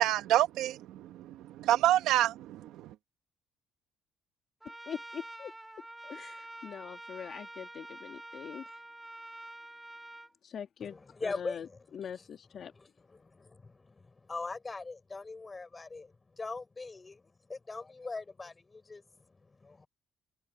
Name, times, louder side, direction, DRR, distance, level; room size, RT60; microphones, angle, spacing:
voice 1, 0.0-2.9, right 13 dB, 85° right, 1.1 m, -28 dB
Trumpet, 4.6-10.3, right 1 dB, 10° right, 2.4 m, -47 dB
voice 2, 4.9-5.5 6.0-8.6 10.4-12.7, left 8 dB, 50° left, 1.7 m, -43 dB
voice 3, 10.8-11.7 12.8-17.2 17.5-19.0 19.6-19.9, left 3 dB, 20° left, 5.4 m, -41 dB
cardioid pair, 130°, 0 cm